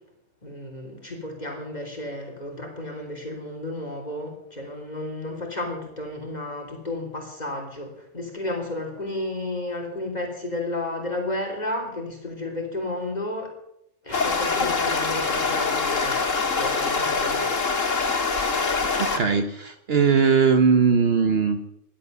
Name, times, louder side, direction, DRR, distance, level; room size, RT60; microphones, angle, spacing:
voice 1, 0.4-13.5 14.0-17.9, left 2 dB, 35° left, 1 dB, 3.5 m, -32 dB
sound 1, 14.1-19.2, left 4 dB, 80° left, 2.3 m, -24 dB
voice 2, 19.0-21.7, right 5 dB, 55° right, 8 dB, 1.1 m, -20 dB
16.0 x 11.5 x 6.8 m, 0.78 s
omnidirectional pair, 1.3 m